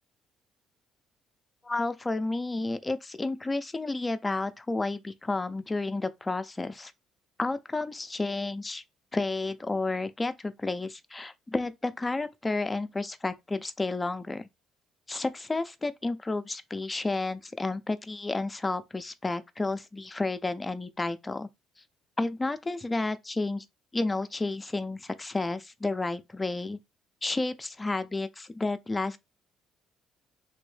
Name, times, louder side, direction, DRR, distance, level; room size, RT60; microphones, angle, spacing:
voice 1, 1.6-6.9 7.4-8.8 9.1-14.5 15.1-21.5 22.2-23.7 23.9-26.8 27.2-29.2, left 2 dB, 20° left, 0.4 m, -31 dB
3.4 x 2.6 x 3.2 m
cardioid pair, 85°, 0 cm